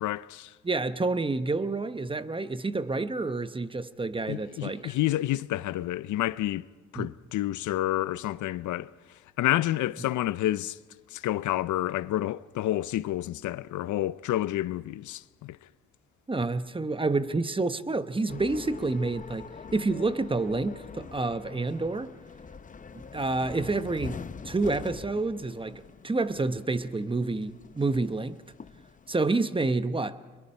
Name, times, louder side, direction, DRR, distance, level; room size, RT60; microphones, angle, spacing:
voice 1, 0.0-0.5 4.3-6.6 6.9-8.9 9.4-10.8 11.1-15.6, left 14 dB, 75° left, 0.6 m, -29 dB
voice 2, 0.6-4.9 6.9-7.1 16.3-19.5 19.7-22.1 22.9-24.2 24.4-28.4 29.1-30.2, right 3 dB, 15° right, 0.9 m, -29 dB
sound 1, 18.3-29.2, left 5 dB, 25° left, 0.7 m, -44 dB
24.0 x 22.5 x 5.5 m
cardioid pair, 90°, 30 cm